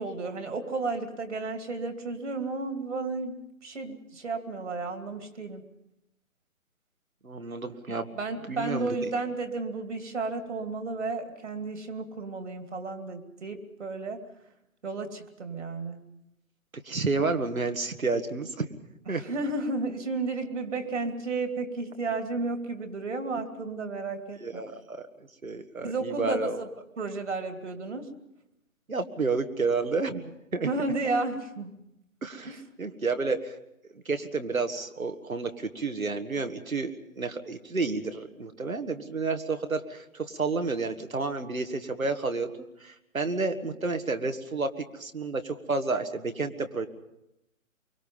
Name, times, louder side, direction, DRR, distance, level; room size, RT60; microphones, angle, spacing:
voice 1, 0.0-3.4 3.6-5.6 8.1-14.2 14.8-16.0 19.1-24.6 25.8-26.7 27.0-28.1 30.6-31.7 32.4-32.6, right 3 dB, 60° right, 7 dB, 2.7 m, -32 dB
voice 2, 7.2-8.1 8.5-9.0 16.9-18.7 19.1-19.2 24.4-25.1 25.4-26.6 28.9-30.7 32.2-33.6 34.1-42.5 42.8-46.9, right 3 dB, 80° right, 7 dB, 1.9 m, -30 dB
24.0 x 24.0 x 5.5 m, 0.85 s
figure-of-eight pair, 135°, 41 cm